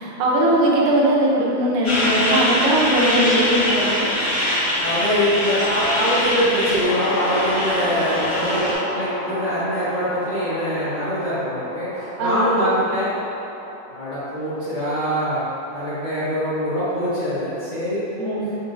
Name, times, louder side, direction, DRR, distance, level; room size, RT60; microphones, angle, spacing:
voice 1, 0.0-4.1 7.8-8.7 12.2-12.5 18.2-18.6, right 1 dB, 80° right, -4 dB, 2.3 m, -20 dB
Truck, 1.8-8.7, left 1 dB, 60° left, 1.0 m, -23 dB
voice 2, 4.8-8.6 8.9-13.2 13.9-18.5, equal, 45° left, -15 dB, 1.3 m, -24 dB
sound 1, 6.8-15.3, left 1 dB, 80° left, 2.1 m, -30 dB
6.9 x 2.8 x 2.5 m, 2.9 s
omnidirectional pair, 4.1 m